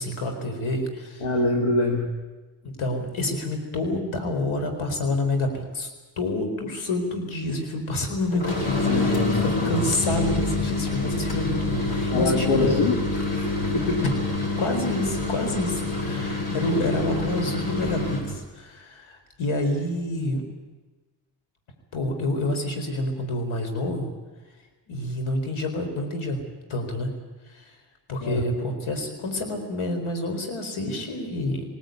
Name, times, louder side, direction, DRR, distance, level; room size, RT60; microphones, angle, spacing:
voice 1, 0.0-1.3 2.8-5.9 6.2-12.7 14.0-14.1 14.6-20.4 21.9-24.1 24.9-26.4 26.7-27.1 27.5-27.7 28.1-31.6, left 1 dB, 75° left, 5 dB, 4.4 m, -28 dB
voice 2, 1.2-2.1 8.8-9.8 12.1-14.0 28.2-28.4, left 2 dB, 90° left, 2 dB, 2.2 m, -25 dB
sound 1, 8.3-18.3, left 3 dB, 45° left, 8.0 m, -27 dB
20.0 x 18.0 x 9.4 m, 1.2 s
supercardioid pair, 45°, 49 cm